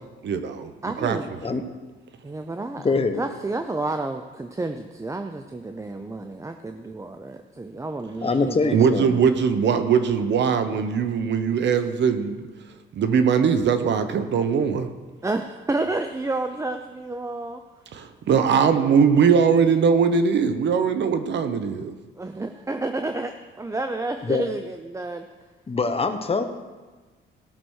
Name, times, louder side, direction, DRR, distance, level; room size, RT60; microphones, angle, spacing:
voice 1, 0.2-0.7 1.0-1.6 8.7-12.5 12.9-14.9 17.9-21.9, right 6 dB, 65° right, 9 dB, 1.0 m, -21 dB
voice 2, 0.8-1.3 2.2-8.8 15.2-17.6 22.2-25.3, right 2 dB, 15° right, 6 dB, 0.7 m, -30 dB
voice 3, 2.8-3.2 8.2-9.2 24.2-24.4 25.7-26.4, left 4 dB, 30° left, 8 dB, 1.1 m, -24 dB
17.0 x 6.1 x 6.4 m, 1.3 s
cardioid pair, 90°, 20 cm